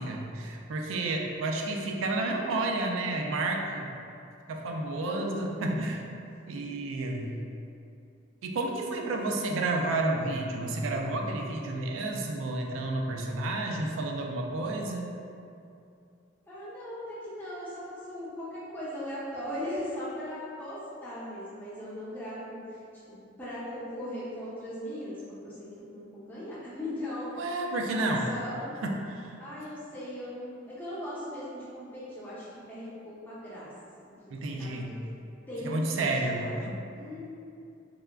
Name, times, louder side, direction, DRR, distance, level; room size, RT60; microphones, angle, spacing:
voice 1, 0.0-3.9 4.5-6.0 6.5-7.3 8.4-15.1 27.4-28.3 28.8-29.4 34.3-34.9 35.6-36.8, right 2 dB, 90° right, 1 dB, 0.3 m, -31 dB
voice 2, 5.0-5.6 7.2-7.7 16.5-22.8 23.4-27.3 27.9-28.8 29.4-33.7 34.0-34.1 34.6-34.8 35.5-36.6 36.9-37.3, left 1 dB, 10° left, -10 dB, 0.7 m, -39 dB
3.5 x 2.2 x 2.2 m, 2.6 s
head